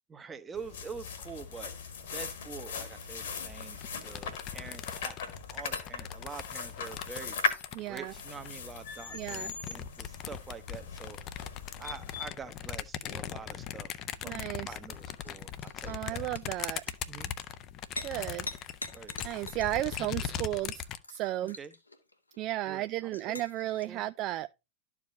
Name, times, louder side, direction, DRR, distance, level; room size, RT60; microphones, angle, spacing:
voice 1, 0.1-1.7 2.1-5.2 5.5-7.4 7.8-11.5 11.8-16.2 17.1-17.3 18.9-19.2 21.6-21.7 22.7-23.4 23.8-24.1, right 5 dB, 15° right, 1.0 m, -46 dB
sound 1, 0.5-12.3, left 6 dB, 60° left, 1.5 m, -39 dB
sound 2, 3.8-8.6 9.2-21.0, left 10 dB, 35° left, 0.6 m, -40 dB
voice 2, 7.7-8.1 9.1-9.5 14.2-14.8 15.9-16.8 18.0-18.6 19.2-21.6 22.4-24.5, right 15 dB, 40° right, 0.3 m, -34 dB
sound 3, 14.9-23.8, left 2 dB, 85° left, 1.1 m, -46 dB
12.5 x 4.9 x 2.6 m
figure-of-eight pair, 90°, 0 cm